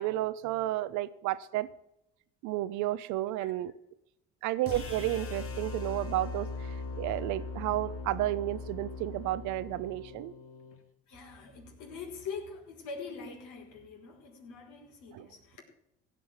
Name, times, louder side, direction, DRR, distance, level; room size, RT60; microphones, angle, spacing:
voice 1, 0.0-1.7 2.4-3.7 4.4-10.3 15.1-15.3, right 15 dB, 75° right, 14 dB, 0.9 m, -32 dB
sound 1, 4.7-10.8, left 4 dB, 45° left, 2.5 m, -40 dB
voice 2, 11.1-15.6, left 5 dB, 75° left, 1 dB, 4.9 m, -43 dB
16.5 x 6.3 x 9.3 m, 0.82 s
supercardioid pair, 70°, 30 cm